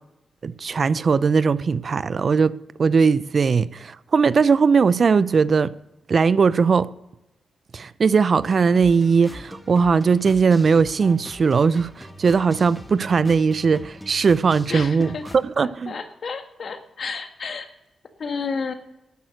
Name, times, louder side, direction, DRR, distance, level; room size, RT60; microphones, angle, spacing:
voice 1, 0.4-2.5 2.8-5.7 6.1-6.9 7.7-15.9, right 5 dB, 60° right, 0.5 m, -19 dB
sound 1, 8.4-15.4, equal, 5° left, 1.8 m, -42 dB
voice 2, 14.7-15.2 15.6-17.7 18.2-18.7, left 5 dB, 65° left, 1.7 m, -31 dB
12.5 x 9.1 x 6.4 m
supercardioid pair, 40°, 0 cm